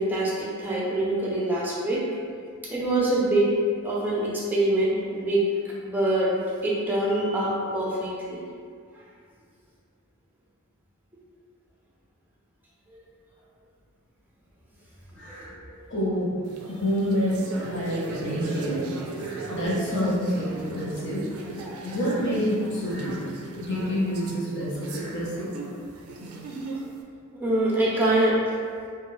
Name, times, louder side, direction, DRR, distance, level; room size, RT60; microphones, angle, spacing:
voice 1, 0.0-2.1 2.6-3.5 3.8-5.5 5.8-6.3 6.6-8.4 15.4-15.8 21.6-21.7 26.8-26.9 27.3-28.4, right 1 dB, 10° right, -6 dB, 0.5 m, -25 dB
voice 2, 15.2-15.5 15.9-16.3 16.7-18.9 19.2-21.2 21.8-23.2 23.6-25.7, equal, 55° left, -6 dB, 0.7 m, -28 dB
sound 1, 16.5-27.0, right 3 dB, 75° right, 0.4 m, -37 dB
2.8 x 2.2 x 3.0 m, 2.1 s
head